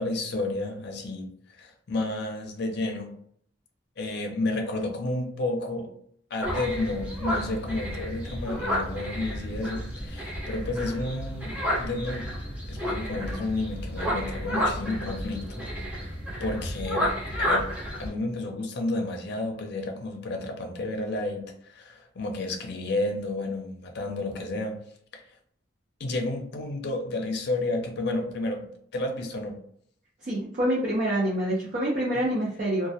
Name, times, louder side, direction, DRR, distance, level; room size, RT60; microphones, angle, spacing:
voice 1, 0.0-3.1 4.0-5.9 6.3-12.3 12.7-15.6 15.9-17.1 17.4-17.7 18.0-24.8 25.1-25.2 26.0-28.7 28.9-29.6 32.1-32.2, left 2 dB, 60° left, 3 dB, 0.5 m, -31 dB
sound 1, 6.4-18.1, equal, 5° right, 0.7 m, -31 dB
voice 2, 30.2-32.9, right 1 dB, 45° right, -5 dB, 0.5 m, -26 dB
2.2 x 2.1 x 2.7 m, 0.64 s
head